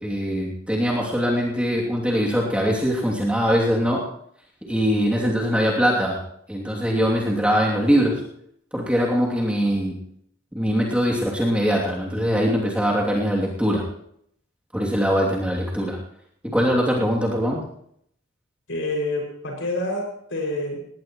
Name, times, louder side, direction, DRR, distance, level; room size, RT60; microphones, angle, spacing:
voice 1, 0.0-4.0 4.7-6.2 6.5-8.3 8.7-10.0 10.5-13.9 14.7-16.0 16.4-17.6, equal, 5° right, -4 dB, 2.8 m, -22 dB
voice 2, 18.7-20.8, left 1 dB, 75° left, 0 dB, 6.4 m, -28 dB
20.0 x 18.5 x 3.2 m, 0.68 s
head